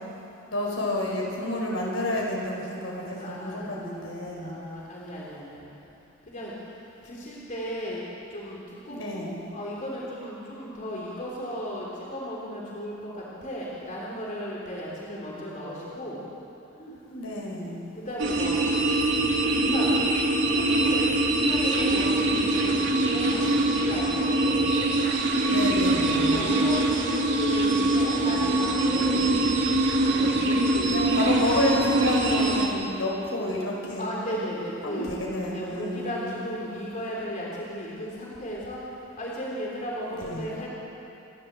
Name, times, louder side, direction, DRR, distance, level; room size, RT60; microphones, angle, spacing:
voice 1, 0.5-4.5 8.9-9.4 16.8-17.8 25.4-26.5 29.0-29.3 30.9-34.1 34.8-36.5 40.1-40.4, left 1 dB, 70° left, -2 dB, 4.9 m, -30 dB
voice 2, 3.1-3.9 4.4-5.7 6.3-6.5 7.0-8.0 8.3-16.2 17.9-18.7 19.4-20.2 20.5-24.9 26.1-29.2 30.1-31.4 34.0-35.1 35.5-38.8 39.2-40.7, equal, 40° left, -5 dB, 3.5 m, -35 dB
sound 1, 18.2-32.7, right 2 dB, 65° right, 2.8 m, -23 dB
28.5 x 12.5 x 7.6 m, 3.0 s
head